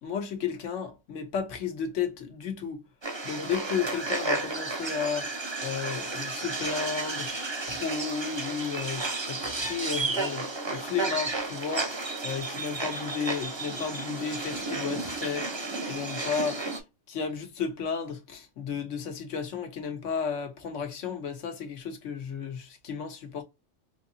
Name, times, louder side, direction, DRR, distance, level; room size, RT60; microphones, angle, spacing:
voice 1, 0.0-2.8 3.2-5.3 5.6-7.3 7.7-15.5 15.8-16.6 17.1-23.4, left 6 dB, 75° left, 1.2 m, -33 dB
sound 1, 3.0-16.8, right 3 dB, 30° right, 0.6 m, -32 dB
4.0 x 2.7 x 2.6 m
omnidirectional pair, 1.3 m